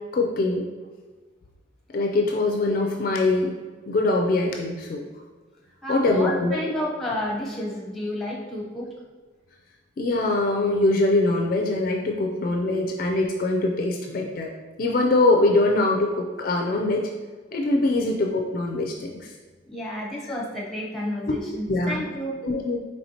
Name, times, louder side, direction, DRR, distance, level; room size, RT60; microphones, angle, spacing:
voice 1, 0.1-0.6 1.9-3.5 3.9-5.0 5.9-6.6 10.0-14.5 14.8-17.1 17.5-19.3 21.3-21.4 21.7-22.0 22.4-22.8, left 2 dB, 45° left, 0 dB, 0.3 m, -23 dB
voice 2, 5.8-8.9 17.9-18.0 19.7-22.4, left 1 dB, ahead, -4 dB, 0.7 m, -31 dB
4.3 x 3.2 x 2.8 m, 1.4 s
head